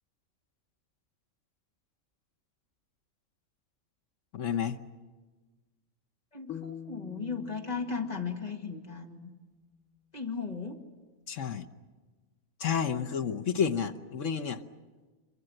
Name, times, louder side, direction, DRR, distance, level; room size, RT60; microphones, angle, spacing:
voice 1, 4.3-4.8 11.3-11.7 12.6-14.6, left 7 dB, 65° left, 6 dB, 1.3 m, -30 dB
voice 2, 6.3-9.3 10.1-10.8, left 5 dB, 30° left, 2 dB, 2.1 m, -36 dB
sound 1, 6.5-9.6, left 8 dB, 85° left, 1.9 m, -46 dB
26.0 x 23.5 x 7.8 m, 1.3 s
omnidirectional pair, 1.4 m